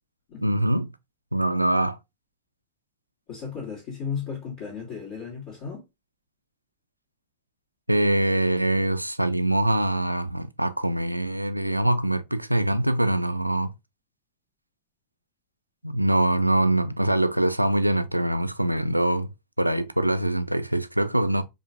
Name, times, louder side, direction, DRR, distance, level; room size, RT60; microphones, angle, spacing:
voice 1, 0.4-0.9 1.3-2.0 7.9-13.7 15.8-19.3 19.6-21.4, right 1 dB, 90° right, 0.3 m, -23 dB
voice 2, 3.3-5.9, left 6 dB, 50° left, 2.0 m, -35 dB
4.8 x 2.5 x 2.6 m
figure-of-eight pair, 90°, 0 cm